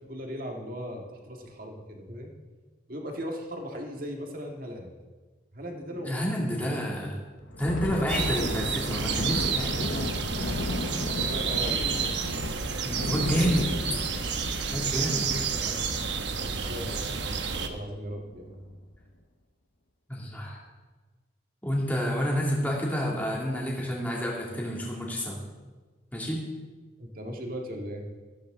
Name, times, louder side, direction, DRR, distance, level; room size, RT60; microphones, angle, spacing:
voice 1, 0.0-2.3 2.9-4.9 5.5-6.8 8.1-8.4 11.1-12.1 12.7-13.6 13.9-14.0 14.8-15.8 16.3-18.6 27.0-28.1, equal, 50° right, 2 dB, 1.8 m, -38 dB
voice 2, 6.0-7.1 7.6-10.0 12.8-13.7 14.7-15.3 20.1-20.6 21.6-25.4 26.1-26.4, equal, 10° left, -3 dB, 2.5 m, -29 dB
Thunder, 7.4-16.5 16.8-17.0 17.4-17.7 18.3-18.8, left 1 dB, 80° left, 1.1 m, -35 dB
sound 1, 8.1-17.7, right 5 dB, 70° right, 1.0 m, -30 dB
14.5 x 13.5 x 3.8 m, 1.3 s
head